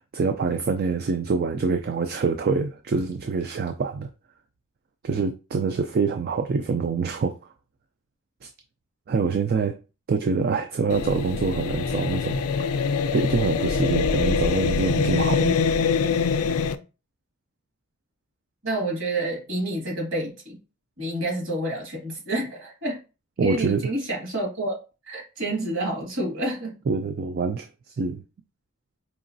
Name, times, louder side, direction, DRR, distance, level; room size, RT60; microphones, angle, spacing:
voice 1, 0.0-4.1 5.0-7.4 8.4-8.5 9.1-9.8 10.1-12.4 13.0-15.6 23.4-23.9 26.9-27.7 28.0-28.2, right 4 dB, 45° right, 0.3 m, -25 dB
sound 1, 10.9-16.7, left 5 dB, 85° left, 0.4 m, -24 dB
voice 2, 18.6-20.6 21.0-23.0 23.4-24.7 25.1-26.8, right 1 dB, 60° right, 2.0 m, -29 dB
4.8 x 2.9 x 2.6 m
head